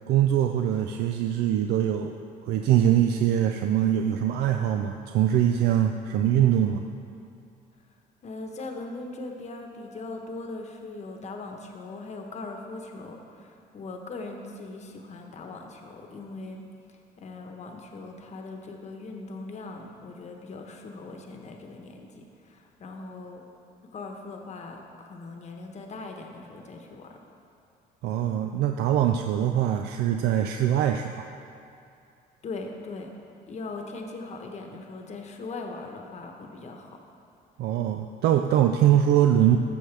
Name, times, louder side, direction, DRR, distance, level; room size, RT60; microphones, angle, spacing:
voice 1, 0.1-2.1 2.5-6.8 28.0-31.3 37.6-39.6, right 10 dB, 75° right, 5 dB, 0.4 m, -23 dB
voice 2, 8.2-16.6 17.2-23.4 23.9-27.2 32.4-33.1 33.5-37.0, left 3 dB, 40° left, 2 dB, 1.1 m, -40 dB
14.0 x 6.3 x 3.4 m, 2.6 s
cardioid pair, 110°, 17 cm